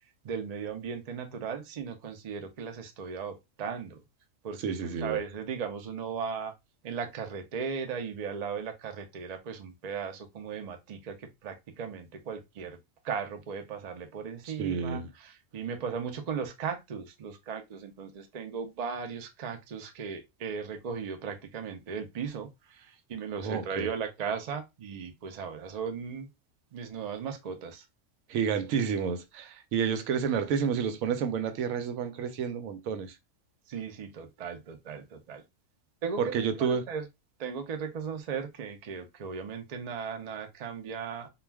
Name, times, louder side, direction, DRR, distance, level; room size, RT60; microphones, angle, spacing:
voice 1, 0.2-4.0 4.4-6.5 6.8-12.8 13.0-26.3 26.7-27.8 33.7-35.4 36.0-37.1 37.4-41.3, right 6 dB, 70° right, 0.3 m, -37 dB
voice 2, 4.6-5.2 14.5-15.1 23.4-23.9 28.3-33.2 36.2-36.8, right 7 dB, 85° right, 1.0 m, -30 dB
2.3 x 2.2 x 3.2 m
omnidirectional pair, 1.4 m